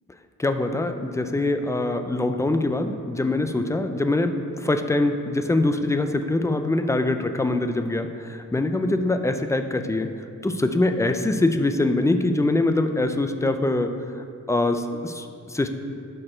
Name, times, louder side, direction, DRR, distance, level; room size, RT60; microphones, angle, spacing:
voice 1, 0.4-10.1 10.4-13.9 14.5-15.7, left 2 dB, 10° left, 7 dB, 0.3 m, -23 dB
11.5 x 4.4 x 4.3 m, 2.3 s
wide cardioid pair, 145°, 32 cm